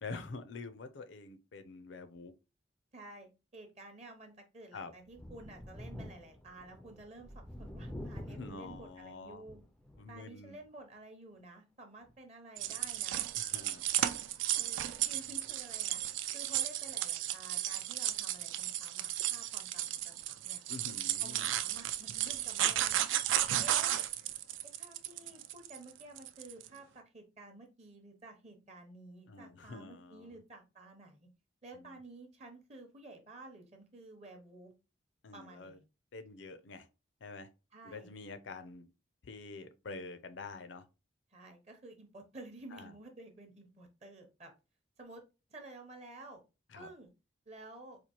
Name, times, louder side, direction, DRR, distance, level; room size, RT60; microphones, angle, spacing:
voice 1, 0.0-2.3 4.7-4.9 8.3-9.5 10.0-10.6 13.4-13.9 14.7-14.9 20.7-21.5 29.3-30.4 31.7-32.0 35.2-35.8 36.1-36.9 37.2-37.5 37.8-38.9 39.2-40.8 42.7-42.9 46.7-46.9, left 3 dB, 75° left, 0.5 m, -47 dB
voice 2, 2.9-9.6 10.1-13.2 14.6-16.0 16.3-20.6 21.2-23.1 23.6-24.0 24.8-31.3 31.6-34.7 35.3-35.8 37.7-38.1 41.3-44.5 45.0-45.2 45.5-46.4 46.8-47.1 47.5-48.0, right 2 dB, 35° right, 0.7 m, -52 dB
Thunder, 5.1-10.2 10.6-10.7 12.1-12.2, left 1 dB, 5° left, 0.3 m, -47 dB
sound 1, 12.6-26.7, right 12 dB, 85° right, 0.3 m, -34 dB
4.3 x 2.4 x 2.9 m
head